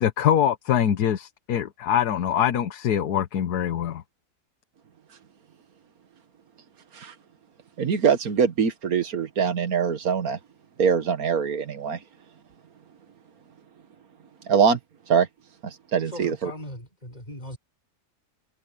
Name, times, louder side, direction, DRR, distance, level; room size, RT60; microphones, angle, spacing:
voice 1, 0.0-4.0, left 9 dB, 85° left, 1.5 m, -23 dB
voice 2, 7.8-10.4 10.8-12.0 14.5-14.8 15.1-15.3 15.6-16.5, right 6 dB, 70° right, 1.9 m, -23 dB
voice 3, 16.1-17.6, left 1 dB, 25° left, 6.5 m, -38 dB
omnidirectional pair, 1.6 m